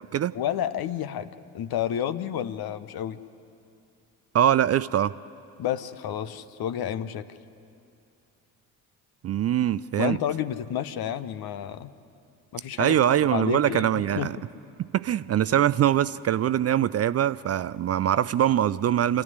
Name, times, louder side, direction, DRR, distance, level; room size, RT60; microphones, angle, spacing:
voice 1, 0.3-3.2 5.6-7.3 10.0-11.9 12.5-13.0 13.3-14.3, left 10 dB, 50° left, 13 dB, 1.0 m, -30 dB
voice 2, 4.3-5.1 9.2-10.2 12.8-14.4 14.8-19.2, right 10 dB, 35° right, 16 dB, 0.5 m, -23 dB
28.0 x 14.0 x 9.7 m, 2.6 s
figure-of-eight pair, 45°, 46 cm